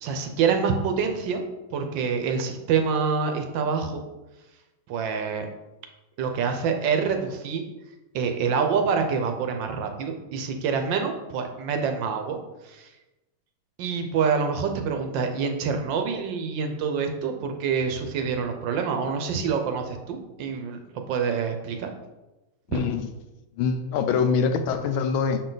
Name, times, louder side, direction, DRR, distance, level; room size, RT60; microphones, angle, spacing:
voice 1, 0.0-1.4 1.7-4.0 4.9-5.5 6.2-7.6 8.1-12.4 12.6-12.9 13.8-21.9 22.7-22.8, right 6 dB, 70° right, 5 dB, 1.3 m, -26 dB
voice 2, 22.7-23.1 23.6-25.4, left 5 dB, 80° left, 8 dB, 1.4 m, -24 dB
6.4 x 4.4 x 3.9 m, 1.0 s
omnidirectional pair, 2.3 m